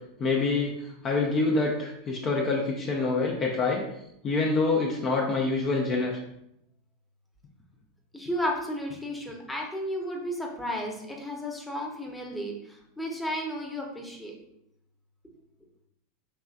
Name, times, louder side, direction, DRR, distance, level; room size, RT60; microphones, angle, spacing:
voice 1, 0.2-3.8 4.2-6.2, left 3 dB, 35° left, -1 dB, 0.7 m, -26 dB
voice 2, 8.1-14.3, equal, 5° left, -1 dB, 0.9 m, -33 dB
5.5 x 3.2 x 2.4 m, 0.78 s
figure-of-eight pair, 85°, 0 cm